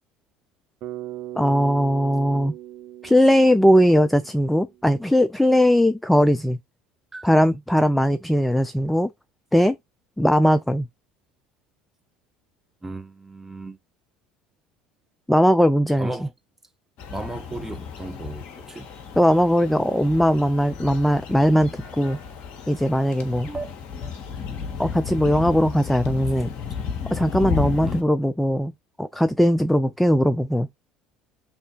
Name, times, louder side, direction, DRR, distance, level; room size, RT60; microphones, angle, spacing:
Bass guitar, 0.8-4.9, right 12 dB, 55° right, 0.7 m, -39 dB
voice 1, 1.4-2.5 3.0-6.6 7.2-9.1 9.5-9.8 10.2-10.9 15.3-16.1 19.2-22.2 22.7-23.5 24.8-26.5 27.1-28.7 29.0-30.7, equal, 5° left, 0.3 m, -19 dB
voice 2, 12.8-13.8 16.0-16.3 17.1-18.9 23.5-23.7 24.0-24.1 27.8-28.0, right 2 dB, 15° right, 0.7 m, -35 dB
sound 1, 17.0-28.0, left 6 dB, 50° left, 1.1 m, -33 dB
3.2 x 2.7 x 4.3 m
hypercardioid pair, 65°, 3 cm